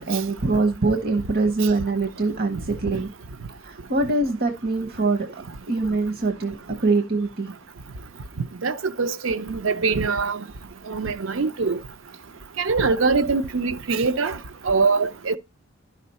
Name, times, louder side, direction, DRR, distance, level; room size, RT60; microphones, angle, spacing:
voice 1, 0.0-3.1 3.6-5.3 5.7-7.5, right 3 dB, 50° right, 1.0 m, -23 dB
voice 2, 8.6-10.4 10.9-11.8 12.6-14.4 14.6-15.4, right 4 dB, 75° right, 0.6 m, -23 dB
11.5 x 5.8 x 4.1 m
head